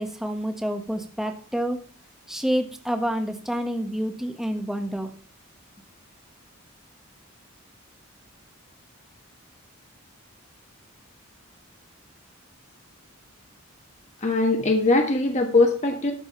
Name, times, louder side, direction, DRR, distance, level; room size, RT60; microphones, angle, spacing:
voice 1, 0.0-1.8 2.3-5.1, equal, ahead, 5 dB, 1.3 m, -28 dB
voice 2, 14.2-16.1, left 2 dB, 35° left, 3 dB, 1.4 m, -21 dB
13.0 x 5.4 x 6.9 m, 0.42 s
head